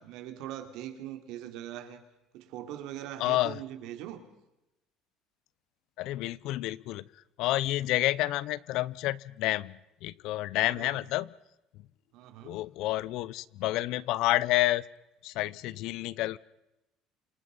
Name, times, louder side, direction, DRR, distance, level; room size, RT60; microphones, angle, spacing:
voice 1, 0.0-2.0 2.3-4.2 10.6-11.0 12.1-12.6, right 12 dB, 70° right, 3.4 m, -41 dB
voice 2, 3.2-3.6 6.0-7.1 7.4-11.3 12.4-14.8 15.2-16.4, left 16 dB, 65° left, 0.8 m, -29 dB
27.5 x 26.5 x 5.5 m
cardioid pair, 150°, 0 cm